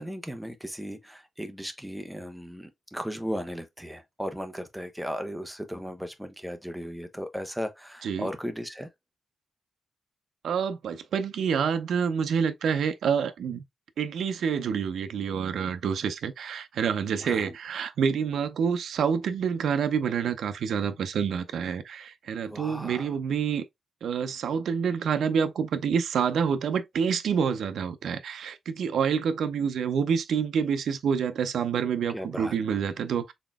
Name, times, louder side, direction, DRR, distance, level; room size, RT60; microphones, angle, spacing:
voice 1, 0.0-8.9 17.2-17.6 22.4-23.1 32.1-32.6, equal, 5° right, 0.5 m, -36 dB
voice 2, 10.4-13.6 14.0-23.6 24.0-33.3, right 7 dB, 80° right, 0.5 m, -27 dB
4.1 x 3.5 x 2.3 m
wide cardioid pair, 170°, 0 cm